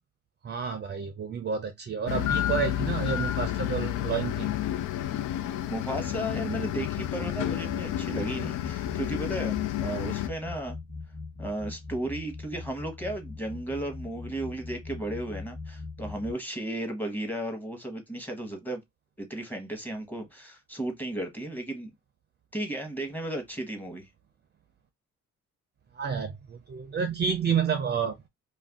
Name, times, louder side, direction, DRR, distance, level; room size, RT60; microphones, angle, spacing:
voice 1, 0.4-4.5 25.9-28.1, right 6 dB, 35° right, 0.5 m, -30 dB
sound 1, 2.1-10.3, left 12 dB, 80° left, 0.4 m, -30 dB
voice 2, 5.7-10.7 11.4-18.8 19.2-21.9 22.5-24.1, right 1 dB, 5° left, 1.0 m, -34 dB
sound 2, 5.9-16.3, left 3 dB, 30° left, 1.1 m, -41 dB
2.5 x 2.2 x 3.4 m
cardioid pair, 90°, 30 cm